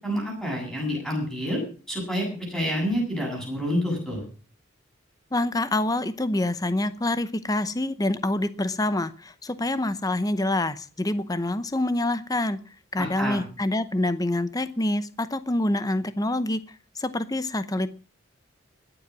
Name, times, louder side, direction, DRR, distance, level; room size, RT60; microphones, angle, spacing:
voice 1, 0.0-1.6 1.9-4.2 13.0-13.4, equal, ahead, -2 dB, 7.8 m, -28 dB
voice 2, 5.3-12.6 12.9-16.6 17.0-18.0, left 1 dB, 20° left, 13 dB, 0.8 m, -26 dB
21.0 x 8.0 x 6.0 m, 0.39 s
head